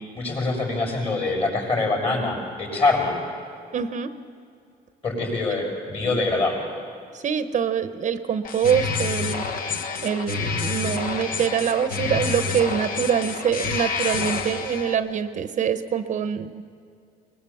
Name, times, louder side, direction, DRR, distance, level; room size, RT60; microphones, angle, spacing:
voice 1, 0.1-3.2 5.0-6.6, left 3 dB, 35° left, 0 dB, 6.8 m, -24 dB
voice 2, 3.7-4.1 5.5-5.6 7.1-9.8 10.0-16.6, right 8 dB, 45° right, 10 dB, 0.9 m, -25 dB
sound 1, 8.4-15.0, left 5 dB, 55° left, 1.4 m, -28 dB
21.5 x 20.5 x 7.2 m, 2.3 s
cardioid pair, 110°, 17 cm